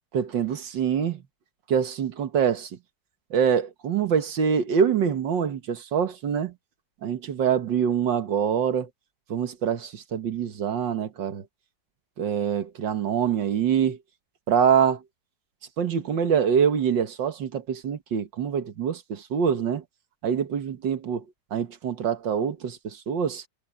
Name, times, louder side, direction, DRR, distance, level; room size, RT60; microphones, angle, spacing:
voice 1, 0.1-1.2 1.7-2.7 3.3-6.5 7.0-8.9 9.3-11.4 12.2-14.0 14.5-15.0 15.8-19.8 20.2-21.2 21.5-23.4, right 7 dB, 85° right, 2.1 m, -25 dB
omnidirectional pair, 1.9 m